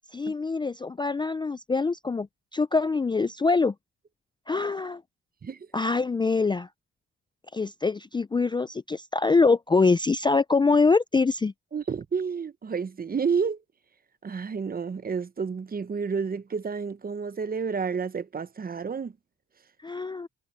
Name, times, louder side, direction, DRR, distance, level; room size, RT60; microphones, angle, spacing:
voice 1, 0.1-2.3 2.5-3.7 4.5-5.0 5.7-6.7 7.5-11.5 19.8-20.3, left 4 dB, 15° left, 0.4 m, -24 dB
voice 2, 11.7-13.6 14.2-19.1, right 5 dB, 30° right, 0.9 m, -30 dB
cardioid pair, 90°, 30 cm